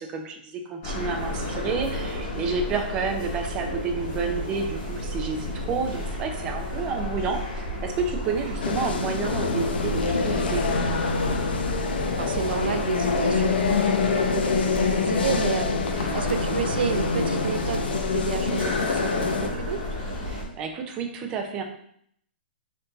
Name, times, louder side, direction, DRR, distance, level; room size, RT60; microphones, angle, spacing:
voice 1, 0.0-10.6 16.0-16.2 20.3-21.6, right 5 dB, 15° right, 4 dB, 0.4 m, -30 dB
sound 1, 0.8-20.4, left 1 dB, 25° left, 1.0 m, -32 dB
sound 2, 8.6-19.5, left 4 dB, 65° left, 0.6 m, -26 dB
voice 2, 12.2-19.8, right 6 dB, 65° right, 8 dB, 0.5 m, -31 dB
4.3 x 2.6 x 3.9 m, 0.68 s
hypercardioid pair, 170°, 6 cm